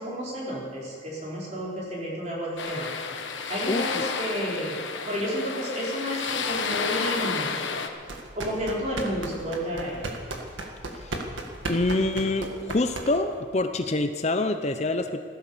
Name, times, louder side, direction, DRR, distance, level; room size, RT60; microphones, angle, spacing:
voice 1, 0.0-2.9 3.5-4.8 5.1-7.6 8.3-10.0, equal, 35° right, -4 dB, 4.0 m, -31 dB
sound 1, 2.6-7.9, left 5 dB, 85° left, 1.2 m, -31 dB
voice 2, 3.7-4.0 11.0-11.1 11.7-15.2, left 2 dB, 35° left, 8 dB, 0.6 m, -26 dB
sound 2, 8.0-13.4, right 2 dB, 90° right, 1.8 m, -35 dB
15.0 x 13.0 x 6.8 m, 2.1 s
head